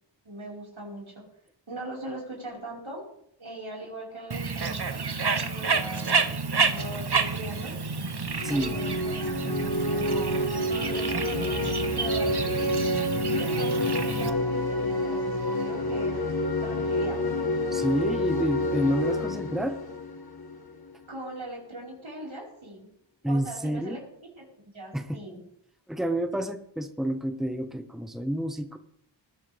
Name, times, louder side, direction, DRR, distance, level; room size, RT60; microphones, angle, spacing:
voice 1, 0.2-1.2 1.7-3.0 3.4-5.0 5.3-7.7 8.5-12.7 13.3-16.2 16.6-17.2 21.1-22.9 23.2-24.0 24.3-25.4, right 1 dB, 90° right, -3 dB, 5.0 m, -40 dB
Bird, 4.3-14.3, right 4 dB, 55° right, 1.0 m, -29 dB
sound 1, 8.3-20.9, left 1 dB, 50° left, 1.5 m, -28 dB
voice 2, 8.4-8.8 17.7-19.8 23.2-24.0 24.9-25.2 25.9-28.8, equal, ahead, 8 dB, 1.0 m, -29 dB
20.0 x 11.0 x 3.5 m, 0.72 s
wide cardioid pair, 50°, 46 cm